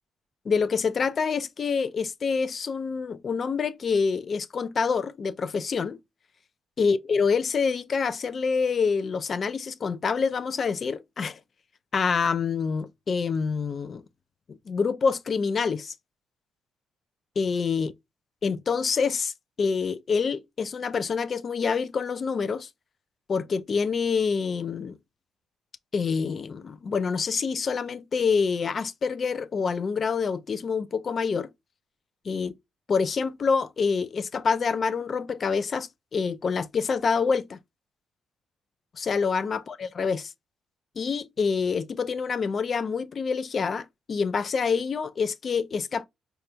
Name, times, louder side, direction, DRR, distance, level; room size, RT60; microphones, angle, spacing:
voice 1, 0.5-6.0 6.8-11.4 11.9-14.0 14.5-15.9 17.4-17.9 18.4-19.3 19.6-22.7 23.3-25.0 25.9-31.5 32.3-32.5 32.9-37.6 39.0-40.3 41.0-46.1, left 5 dB, 45° left, 0.3 m, -26 dB
4.3 x 2.2 x 2.5 m
cardioid pair, 90°, 0 cm